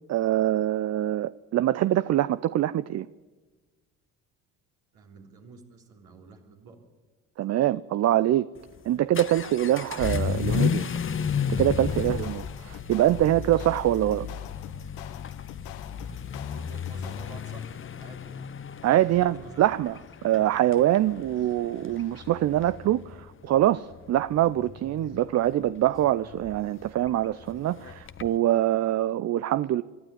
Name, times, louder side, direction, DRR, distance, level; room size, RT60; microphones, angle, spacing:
voice 1, 0.1-3.1 7.4-8.5 8.9-10.9 11.5-14.3 18.8-29.8, right 13 dB, 40° right, 16 dB, 0.5 m, -24 dB
voice 2, 4.9-6.8 16.4-17.7 18.0-18.5 19.0-19.6, right 4 dB, 65° right, 0 dB, 3.8 m, -49 dB
Vehicle / Accelerating revving vroom, 8.6-28.4, left 7 dB, 30° left, 0.9 m, -34 dB
sound 1, 11.9-17.6, left 9 dB, 75° left, 1.2 m, -45 dB
23.5 x 12.0 x 9.5 m, 1.3 s
hypercardioid pair, 50°, 39 cm